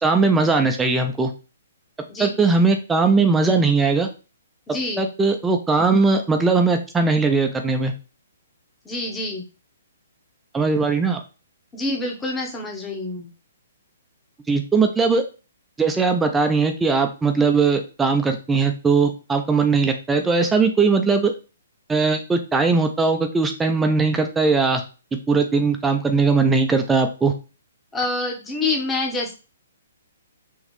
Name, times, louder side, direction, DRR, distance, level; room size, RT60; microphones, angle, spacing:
voice 1, 0.0-1.3 2.2-4.1 5.0-7.9 10.5-11.2 14.5-15.2 15.8-21.3 21.9-24.8 25.3-27.3, right 4 dB, 10° right, 5 dB, 0.4 m, -19 dB
voice 2, 4.7-5.1 8.8-9.4 11.7-13.3 27.9-29.3, left 2 dB, 10° left, 0 dB, 1.0 m, -26 dB
3.9 x 3.0 x 3.2 m, 0.32 s
hypercardioid pair, 135°, 0 cm